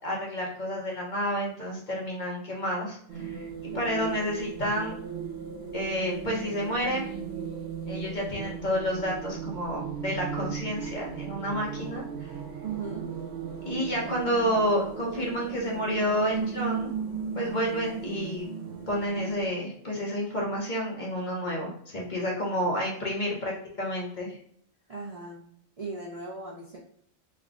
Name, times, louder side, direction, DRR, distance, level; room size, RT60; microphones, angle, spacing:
voice 1, 0.0-3.4 3.7-4.9 5.7-7.1 7.9-12.4 13.7-16.9 17.3-18.4 18.9-24.4, equal, 40° left, -3 dB, 1.0 m, -30 dB
sound 1, 3.1-19.5, right 6 dB, 65° right, 0.9 m, -36 dB
voice 2, 3.7-4.4 12.6-13.1 24.9-25.4 25.8-26.8, right 4 dB, 45° right, -4 dB, 0.5 m, -38 dB
3.4 x 2.2 x 3.7 m, 0.62 s
omnidirectional pair, 1.3 m